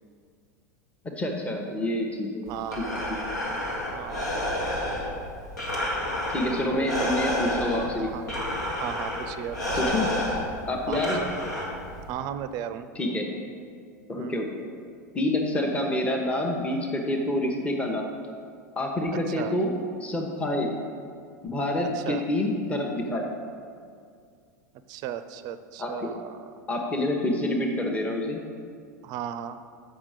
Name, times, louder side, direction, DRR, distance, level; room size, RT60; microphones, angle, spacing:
voice 1, 1.2-2.5 6.3-8.1 9.8-10.1 10.7-11.2 12.9-13.3 14.1-14.6 15.1-18.1 18.8-19.7 20.0-20.7 21.4-23.3 25.8-26.1 26.7-28.4, left 1 dB, 15° left, 1 dB, 0.9 m, -27 dB
Breathing, 2.5-12.1, left 1 dB, 85° left, 1.8 m, -30 dB
voice 2, 2.5-2.9 3.9-4.3 6.7-7.2 8.0-8.4 8.7-10.2 10.9-11.0 12.1-12.9 14.2-14.4 19.3-19.5 21.9-22.2 24.9-26.4 29.0-29.6, right 10 dB, 45° right, 11 dB, 0.5 m, -36 dB
7.3 x 5.5 x 4.9 m, 2.2 s
figure-of-eight pair, 90°, 9 cm